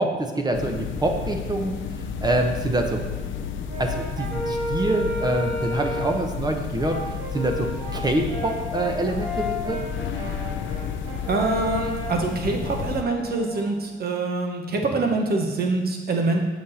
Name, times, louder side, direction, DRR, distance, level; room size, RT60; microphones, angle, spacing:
voice 1, 0.0-1.7 2.2-3.0 3.8-7.0 7.3-9.8, right 1 dB, 20° right, 3 dB, 1.0 m, -25 dB
sound 1, 0.5-13.0, left 7 dB, 75° left, 0.6 m, -32 dB
Brass instrument, 3.7-6.2 6.8-13.8, equal, 80° right, 2.2 m, -33 dB
voice 2, 11.3-16.4, right 3 dB, 50° right, 2 dB, 1.4 m, -25 dB
7.4 x 6.2 x 4.2 m, 1.4 s
cardioid pair, 90°, 20 cm